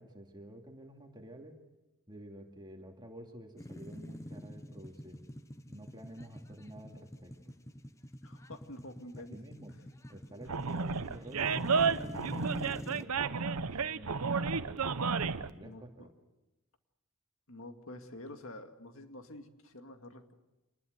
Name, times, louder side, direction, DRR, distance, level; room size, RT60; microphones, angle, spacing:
voice 1, 0.0-1.6 2.1-5.2 5.7-7.5 9.3-9.8 10.1-12.5 12.9-15.0 15.4-16.1, right 1 dB, 20° right, 3 dB, 2.5 m, -50 dB
sound 1, 3.6-13.0, equal, 15° left, 0.8 m, -47 dB
voice 2, 8.2-9.4 15.6-16.1 17.5-20.3, left 1 dB, 60° left, 6 dB, 2.2 m, -48 dB
Animal, 10.5-15.5, right 5 dB, 80° right, 0.9 m, -32 dB
26.5 x 20.5 x 8.0 m, 1.0 s
head